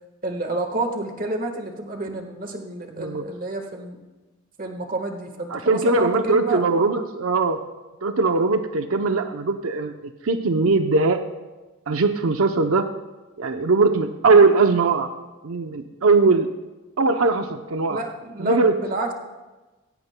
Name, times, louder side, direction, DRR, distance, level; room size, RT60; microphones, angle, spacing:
voice 1, 0.2-4.0 4.6-6.6 17.9-19.1, right 2 dB, 40° right, 4 dB, 1.4 m, -29 dB
voice 2, 5.5-7.6 8.0-9.9 10.2-11.2 11.9-12.9 13.4-15.1 15.4-16.5 17.0-18.0 18.4-18.8, right 3 dB, 90° right, 7 dB, 0.7 m, -20 dB
17.0 x 16.5 x 2.2 m, 1.2 s
head